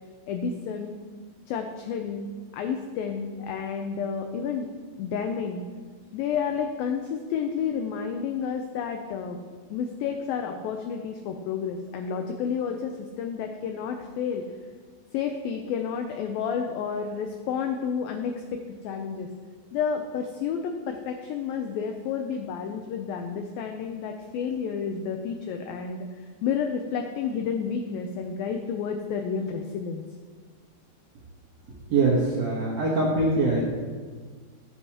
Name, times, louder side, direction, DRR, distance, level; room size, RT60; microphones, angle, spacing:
voice 1, 0.3-1.0 1.5-2.3 2.5-4.7 5.0-5.6 6.1-9.4 9.7-14.5 15.1-19.3 19.7-26.1 26.4-30.0, left 6 dB, 90° left, 5 dB, 2.0 m, -30 dB
voice 2, 31.9-33.6, right 3 dB, 70° right, -6 dB, 1.6 m, -23 dB
14.5 x 8.5 x 2.9 m, 1.5 s
omnidirectional pair, 4.9 m